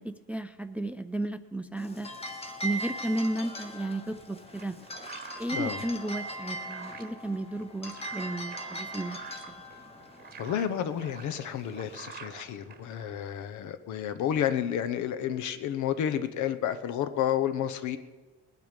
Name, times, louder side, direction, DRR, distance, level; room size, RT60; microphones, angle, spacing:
voice 1, 0.0-2.1 2.6-4.8 5.4-9.2, right 1 dB, 5° right, 11 dB, 0.3 m, -33 dB
sound 1, 1.8-12.2, right 1 dB, 20° left, 1.2 m, -40 dB
sound 2, 4.0-13.3, right 6 dB, 30° right, 1.1 m, -48 dB
voice 2, 10.4-18.0, left 10 dB, 75° left, 10 dB, 1.0 m, -31 dB
20.0 x 9.4 x 5.2 m, 1.3 s
cardioid pair, 165°, 30 cm